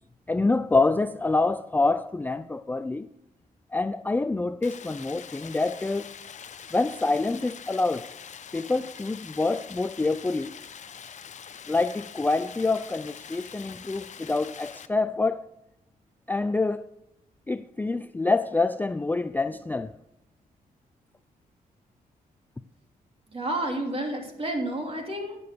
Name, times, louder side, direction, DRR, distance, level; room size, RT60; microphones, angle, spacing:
voice 1, 0.3-3.1 3.7-6.1 6.7-8.1 8.5-10.5 11.7-15.4 16.3-16.9 17.5-19.9, left 3 dB, 10° left, 0.3 m, -26 dB
Stream, 4.6-14.9, left 7 dB, 50° left, 0.6 m, -44 dB
voice 2, 23.3-25.4, right 1 dB, 35° right, 3.0 m, -30 dB
10.0 x 6.8 x 6.9 m
cardioid pair, 75°, 16 cm